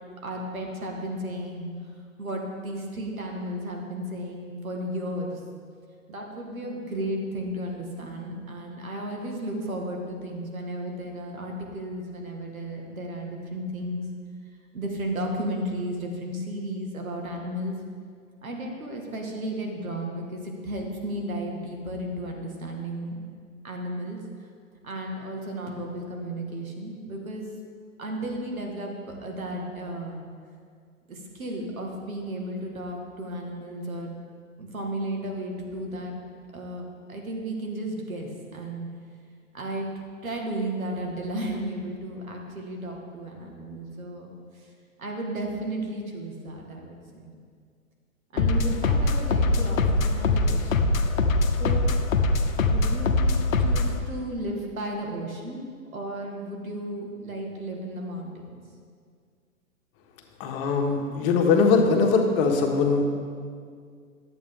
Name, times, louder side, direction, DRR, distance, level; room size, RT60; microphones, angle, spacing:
voice 1, 0.2-1.7 2.2-5.4 6.1-14.0 14.7-17.7 18.4-23.2 23.6-24.5 24.8-27.5 28.0-30.2 31.1-34.2 34.6-36.1 36.5-38.9 39.5-39.9 40.2-44.7 45.0-47.2 48.3-50.9 51.4-52.0 52.6-58.6, right 1 dB, 80° right, 1 dB, 1.8 m, -34 dB
sound 1, 48.4-54.0, left 2 dB, 75° left, 0.8 m, -23 dB
voice 2, 60.4-63.1, left 4 dB, 40° left, 2 dB, 1.4 m, -21 dB
11.0 x 8.1 x 3.7 m, 2.1 s
hypercardioid pair, 110°, 41 cm